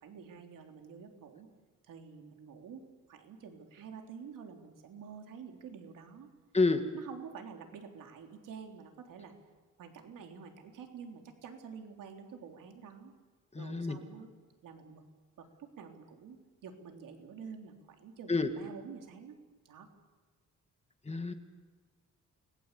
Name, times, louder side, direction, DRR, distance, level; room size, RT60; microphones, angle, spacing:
voice 1, 0.0-1.5 1.9-6.3 6.9-9.3 9.8-13.1 13.6-14.3 14.6-15.0 15.4-19.4 19.7-19.9, right 6 dB, 90° right, 4 dB, 3.5 m, -48 dB
voice 2, 13.5-14.0 18.3-18.5 21.1-21.3, left 3 dB, 20° left, 7 dB, 2.0 m, -28 dB
29.5 x 20.5 x 8.3 m, 1.4 s
cardioid pair, 130°, 31 cm